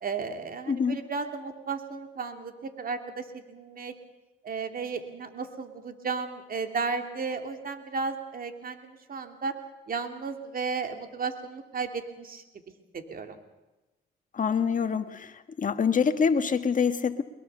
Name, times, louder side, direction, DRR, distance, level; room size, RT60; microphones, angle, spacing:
voice 1, 0.0-3.9 4.4-9.5 9.9-12.4 12.9-13.4, right 4 dB, 45° right, 6 dB, 2.6 m, -34 dB
voice 2, 14.3-15.3 15.6-17.2, left 6 dB, 40° left, 9 dB, 1.7 m, -25 dB
22.5 x 22.0 x 6.9 m, 1.1 s
cardioid pair, 90°, 20 cm